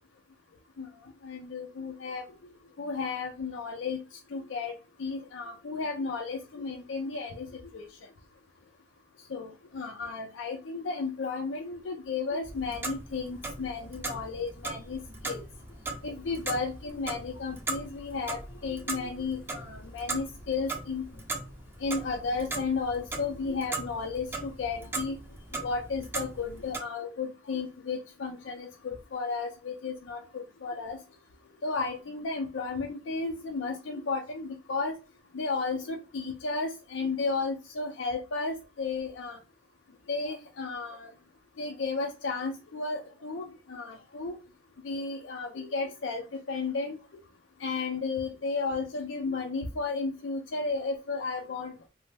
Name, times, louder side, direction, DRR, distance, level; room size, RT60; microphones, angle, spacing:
voice 1, 1.2-2.2 2.8-4.0 4.3-4.7 5.0-7.5 7.7-7.9 9.3-15.4 16.0-21.0 21.8-25.2 25.5-31.0 31.6-34.9 35.3-39.4 40.1-41.1 41.6-44.3 44.8-47.0 47.6-51.7, left 4 dB, 90° left, 3 dB, 0.4 m, -33 dB
Clock, 12.4-26.8, right 3 dB, 10° right, 0.4 m, -39 dB
3.0 x 2.0 x 3.3 m, 0.32 s
head